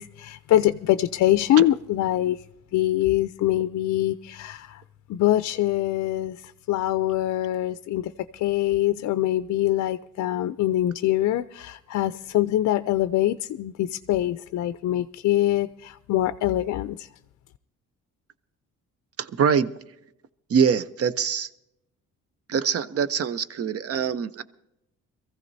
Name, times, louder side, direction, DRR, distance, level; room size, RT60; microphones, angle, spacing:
voice 1, 0.0-2.4 2.7-4.8 5.1-6.4 6.7-17.1, left 13 dB, 65° left, 12 dB, 0.4 m, -24 dB
voice 2, 19.2-19.7 20.5-21.5 22.5-24.4, right 7 dB, 50° right, 14 dB, 0.7 m, -24 dB
23.0 x 15.0 x 2.7 m, 0.84 s
cardioid pair, 90°, 30 cm